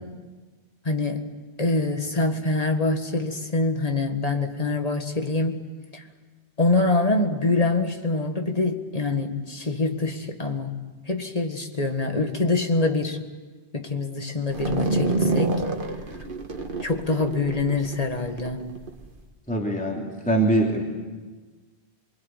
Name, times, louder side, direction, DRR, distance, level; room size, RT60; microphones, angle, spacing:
voice 1, 0.9-1.3 1.6-5.7 5.9-6.0 6.6-10.7 11.1-13.2 13.7-15.6 16.8-18.7, left 2 dB, 35° left, 5 dB, 1.9 m, -25 dB
sound 1, 14.5-19.2, right 2 dB, 55° right, 1.8 m, -28 dB
voice 2, 19.5-20.8, right 2 dB, 5° left, -1 dB, 3.2 m, -23 dB
25.0 x 24.0 x 9.3 m, 1.3 s
omnidirectional pair, 1.1 m